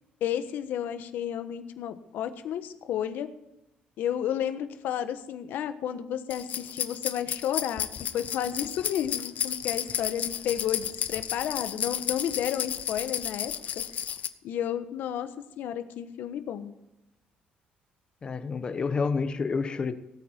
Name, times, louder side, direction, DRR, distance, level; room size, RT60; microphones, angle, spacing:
voice 1, 0.2-3.3 4.0-13.5 14.4-15.3 15.6-16.7, left 10 dB, 70° left, 10 dB, 1.2 m, -32 dB
sound 1, 6.3-14.3, left 9 dB, 50° left, 0.8 m, -32 dB
voice 2, 18.2-19.9, left 5 dB, 25° left, 9 dB, 1.0 m, -29 dB
18.0 x 8.9 x 4.5 m, 0.92 s
cardioid pair, 155°, 3 cm